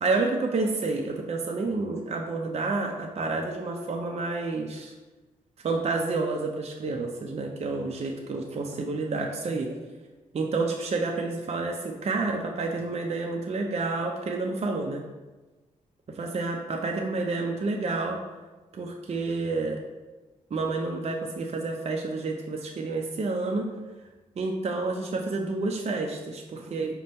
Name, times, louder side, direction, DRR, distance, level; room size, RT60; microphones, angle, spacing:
voice 1, 0.0-4.9 5.6-9.8 10.3-15.0 16.2-18.2 18.7-19.8 20.5-23.7 24.4-26.9, right 3 dB, 45° right, 1 dB, 0.5 m, -29 dB
5.1 x 2.2 x 4.2 m, 1.2 s
supercardioid pair, 50°, 16 cm